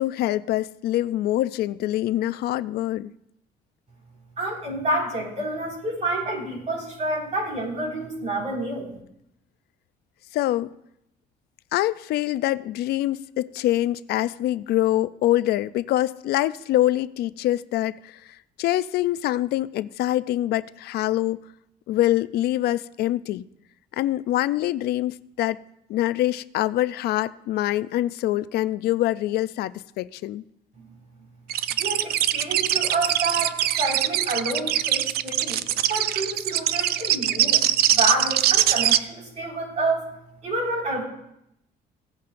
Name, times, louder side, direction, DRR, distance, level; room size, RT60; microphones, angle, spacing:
voice 1, 0.0-3.1 10.3-10.7 11.7-21.4 21.9-23.5 23.9-25.6 25.9-30.4, left 14 dB, 70° left, 0.4 m, -25 dB
voice 2, 4.4-8.9 30.8-30.9 31.8-35.6 35.9-37.6 37.9-40.1 40.4-41.0, right 2 dB, 45° right, 4.9 m, -28 dB
sound 1, 31.5-39.0, right 12 dB, 65° right, 0.5 m, -22 dB
17.5 x 8.6 x 2.6 m
cardioid pair, 110°, 17 cm